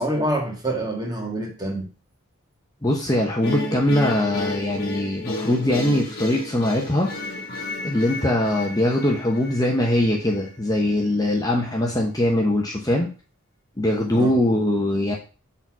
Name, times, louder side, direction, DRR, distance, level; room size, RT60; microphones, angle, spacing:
voice 1, 0.0-1.9 14.1-14.4, right 1 dB, 20° right, 1.9 m, -26 dB
voice 2, 2.8-7.1 7.8-13.1 13.8-15.2, left 1 dB, 15° left, 1.0 m, -22 dB
sound 1, 3.4-10.5, left 2 dB, 45° left, 1.7 m, -32 dB
6.9 x 4.2 x 6.1 m
head